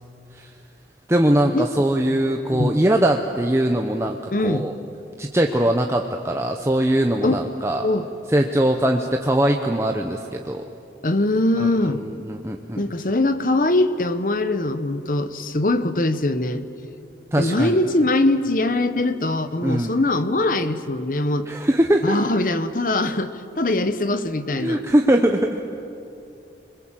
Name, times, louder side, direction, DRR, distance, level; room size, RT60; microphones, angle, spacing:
voice 1, 1.1-4.2 4.4-4.7 5.2-7.9 8.3-10.6 11.6-11.7 12.2-12.8 17.3-17.8 19.6-19.9 21.5-22.2 24.5-25.6, right 1 dB, 15° right, 3 dB, 0.8 m, -21 dB
voice 2, 4.3-4.7 7.2-7.4 7.8-8.1 11.0-12.0 12.8-16.6 17.4-21.5 22.0-24.8, left 2 dB, 50° left, 11 dB, 1.0 m, -22 dB
29.5 x 22.0 x 7.6 m, 2.8 s
head